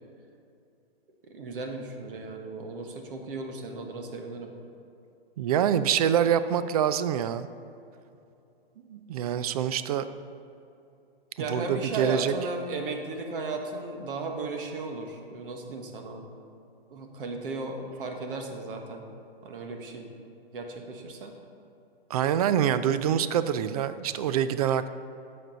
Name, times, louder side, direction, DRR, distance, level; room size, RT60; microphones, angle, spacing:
voice 1, 1.3-4.5 11.4-16.3 16.9-19.1 19.4-20.1 20.5-21.3, right 3 dB, 60° right, 4 dB, 1.5 m, -35 dB
voice 2, 5.4-7.5 8.9-10.1 11.5-12.3 22.1-24.9, right 9 dB, 40° right, 13 dB, 0.4 m, -25 dB
11.0 x 7.0 x 3.9 m, 2.6 s
hypercardioid pair, 135°, 31 cm